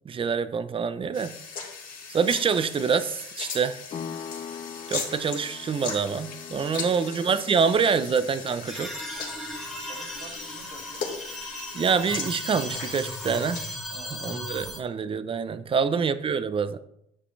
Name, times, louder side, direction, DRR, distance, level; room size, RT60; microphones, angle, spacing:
voice 1, 0.1-1.4 2.1-3.8 4.9-8.9 11.7-13.6 14.2-16.8, right 6 dB, 30° right, 13 dB, 0.6 m, -26 dB
sound 1, 1.1-13.8, left 5 dB, 55° left, 2.6 m, -39 dB
sound 2, 3.9-12.3, left 7 dB, 40° left, 0.6 m, -44 dB
voice 2, 6.7-7.8 9.9-11.2 11.6-11.7 13.9-14.4 14.7-14.8, right 4 dB, 55° right, 0 dB, 2.5 m, -49 dB
sound 3, 8.7-14.8, left 1 dB, ahead, 1.7 m, -37 dB
9.7 x 7.6 x 3.2 m, 0.77 s
cardioid pair, 110°, 17 cm